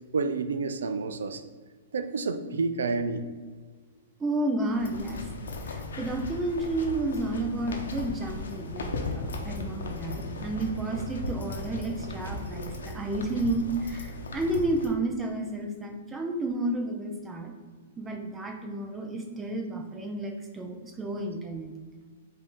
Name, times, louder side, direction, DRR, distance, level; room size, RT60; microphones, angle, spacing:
voice 1, 0.1-1.4 1.9-3.2, right 4 dB, 85° right, 10 dB, 0.4 m, -29 dB
voice 2, 4.2-5.2 5.7-17.5 18.0-21.7, right 2 dB, 15° right, 3 dB, 0.5 m, -31 dB
sound 1, 4.7-14.9, left 2 dB, 85° left, 0.8 m, -37 dB
sound 2, 9.1-13.9, right 1 dB, 30° left, 1.0 m, -43 dB
5.2 x 2.7 x 3.7 m, 1.5 s
hypercardioid pair, 140°, 0 cm